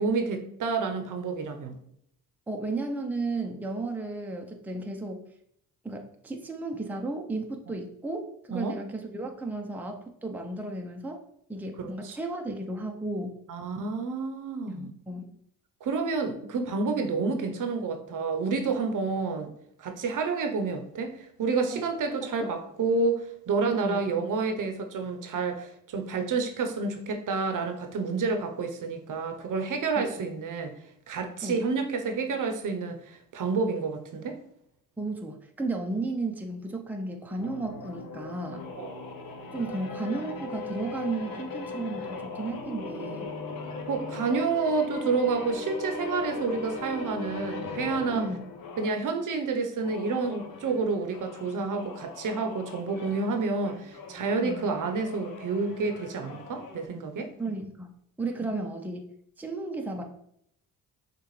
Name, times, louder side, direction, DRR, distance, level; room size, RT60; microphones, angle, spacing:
voice 1, 0.0-1.8 8.5-8.8 11.8-12.2 13.5-14.9 15.8-19.5 19.8-30.7 31.1-34.4 38.8-38.9 43.9-48.2 48.8-57.3, right 4 dB, 55° right, 5 dB, 0.8 m, -29 dB
voice 2, 2.5-5.3 5.8-11.2 11.5-13.4 14.7-15.3 21.7-22.5 23.7-24.1 30.0-30.1 31.4-31.7 35.0-38.6 39.5-43.3 48.1-48.5 54.4-54.7 57.4-59.0 59.4-60.0, right 2 dB, 5° right, 3 dB, 0.6 m, -34 dB
sound 1, 37.4-49.1 49.7-56.9, left 3 dB, 65° left, 0.9 m, -39 dB
6.4 x 2.4 x 3.2 m, 0.72 s
cardioid pair, 70°, 37 cm